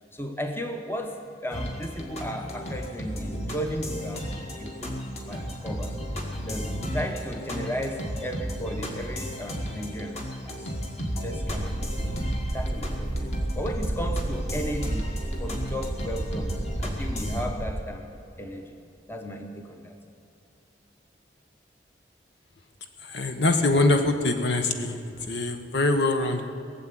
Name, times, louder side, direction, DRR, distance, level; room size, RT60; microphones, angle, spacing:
voice 1, 0.1-4.3 4.6-4.9 5.3-6.0 6.4-10.7 11.2-11.9 12.5-15.1 15.4-18.1 18.4-18.7 19.1-20.0 23.6-23.7, equal, 10° left, 4 dB, 0.9 m, -35 dB
sound 1, 1.5-17.4, equal, 35° left, 1.9 m, -34 dB
sound 2, 11.4-17.8, right 1 dB, 15° right, 0.5 m, -32 dB
voice 2, 23.0-26.4, left 2 dB, 65° left, 6 dB, 1.2 m, -24 dB
18.0 x 7.5 x 9.2 m, 2.8 s
head